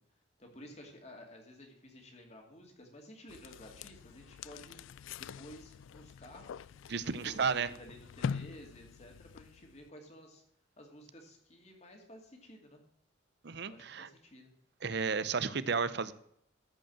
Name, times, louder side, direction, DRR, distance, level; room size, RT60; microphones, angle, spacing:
voice 1, 0.4-4.8 5.2-6.5 7.0-10.4 10.8-12.8 13.6-14.5, equal, 35° left, 2 dB, 2.4 m, -53 dB
sound 1, 3.3-9.9, left 6 dB, 75° left, 0.3 m, -44 dB
voice 2, 6.9-7.7 13.4-14.1 14.8-16.1, right 5 dB, 55° right, 15 dB, 0.7 m, -33 dB
13.5 x 5.4 x 7.3 m, 0.71 s
head